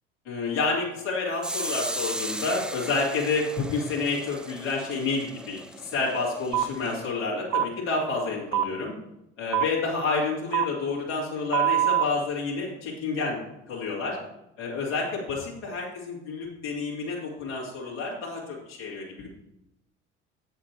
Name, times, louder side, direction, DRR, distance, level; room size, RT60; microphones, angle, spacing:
voice 1, 0.2-8.9 9.4-13.4 13.7-14.2 14.6-19.3, left 3 dB, 80° left, -5 dB, 2.6 m, -29 dB
sound 1, 1.4-7.1, right 1 dB, ahead, 0.4 m, -37 dB
sound 2, 6.5-6.7 7.5-7.7 8.5-8.6 9.5-9.6 10.5-10.6 11.5-12.0, right 11 dB, 50° right, 0.6 m, -23 dB
8.0 x 7.2 x 4.5 m, 0.87 s
hypercardioid pair, 60°, 36 cm